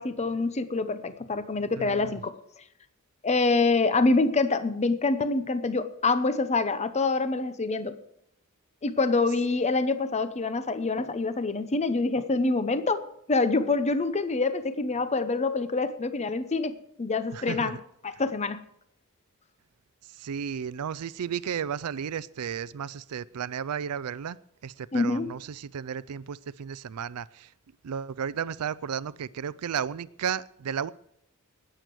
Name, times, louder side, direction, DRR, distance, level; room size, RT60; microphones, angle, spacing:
voice 1, 0.0-2.3 3.2-8.0 8.8-17.8 18.0-18.6 24.9-25.3, left 3 dB, 30° left, 0.7 m, -26 dB
voice 2, 1.8-2.2 17.3-17.8 20.1-24.4 24.6-27.5 27.8-30.9, right 7 dB, 85° right, 0.4 m, -33 dB
19.5 x 7.8 x 4.7 m
head